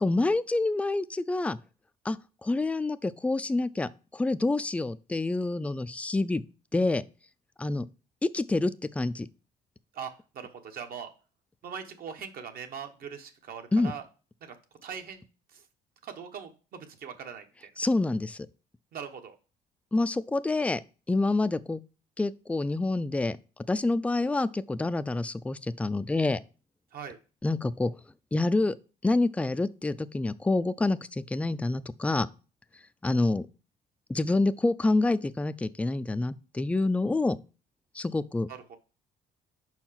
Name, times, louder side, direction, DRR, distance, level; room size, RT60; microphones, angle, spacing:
voice 1, 0.0-1.6 2.0-6.4 6.7-7.0 7.6-7.9 8.2-9.3 13.7-13.9 17.8-18.5 19.9-20.8 21.1-21.8 22.2-23.4 23.7-26.4 27.4-27.9 28.3-28.8 29.0-32.3 33.0-33.5 34.1-37.4 38.0-38.5, left 2 dB, 10° left, 0.3 m, -27 dB
voice 2, 9.9-11.1 11.6-14.0 14.4-14.6 14.8-15.2 15.5-15.6 16.0-17.7 18.9-19.3 26.9-27.2 38.5-38.8, right 7 dB, 60° right, 1.2 m, -41 dB
5.6 x 4.5 x 5.7 m
cardioid pair, 110°, 17 cm